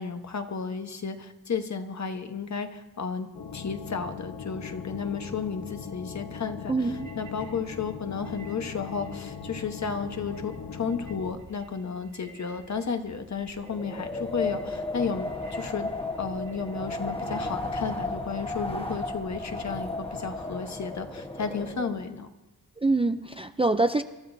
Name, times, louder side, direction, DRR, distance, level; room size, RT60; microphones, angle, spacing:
voice 1, 0.0-3.3 3.5-15.9 16.2-22.3, left 5 dB, 50° left, 6 dB, 1.1 m, -33 dB
sound 1, 3.3-11.3, left 6 dB, 80° left, 1.0 m, -39 dB
voice 2, 6.7-7.1 22.8-24.0, right 2 dB, 15° right, 8 dB, 0.4 m, -25 dB
sound 2, 6.9-20.3, right 3 dB, 85° right, 5.8 m, -51 dB
Wind, 13.6-22.0, left 2 dB, 15° left, 1.3 m, -34 dB
27.0 x 13.0 x 2.7 m, 1.1 s
wide cardioid pair, 95°, 36 cm